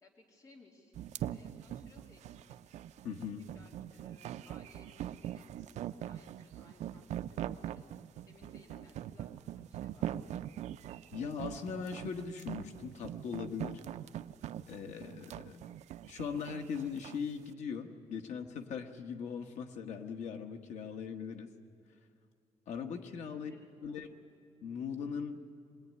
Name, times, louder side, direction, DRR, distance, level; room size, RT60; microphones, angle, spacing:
voice 1, 0.0-2.7 3.4-5.7 6.0-7.8 8.2-10.3 23.5-24.1, left 2 dB, 30° left, 0 dB, 2.7 m, -61 dB
sound 1, 1.0-17.2, right 11 dB, 80° right, 0.5 m, -42 dB
voice 2, 3.0-3.4 11.1-13.8 14.7-15.7 16.1-21.5 22.7-23.5 23.8-24.1 24.6-25.4, left 6 dB, 85° left, 5 dB, 1.5 m, -40 dB
24.5 x 20.0 x 9.6 m, 2.5 s
wide cardioid pair, 175°, 12 cm